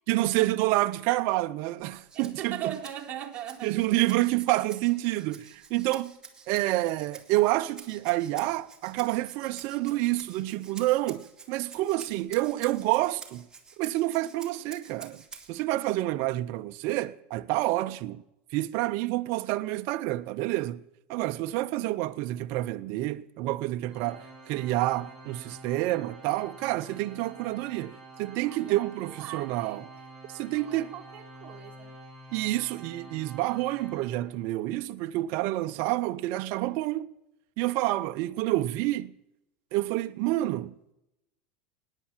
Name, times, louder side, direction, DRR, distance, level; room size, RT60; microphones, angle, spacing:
voice 1, 0.1-2.5 3.6-6.1 6.5-13.4 13.8-15.2 15.5-18.2 18.5-20.8 21.1-29.8 30.3-30.9 32.3-37.1 37.6-39.1 39.7-40.7, right 17 dB, 55° right, 0.6 m, -28 dB
Rattle (instrument), 1.8-15.6, right 5 dB, 15° right, 2.1 m, -50 dB
voice 2, 2.1-3.8 9.8-10.0 28.5-29.9 30.5-32.0, right 11 dB, 30° right, 1.8 m, -40 dB
Organ, 23.9-34.7, right 2 dB, 5° left, 5.1 m, -48 dB
17.5 x 9.9 x 7.3 m
supercardioid pair, 120°, 5 cm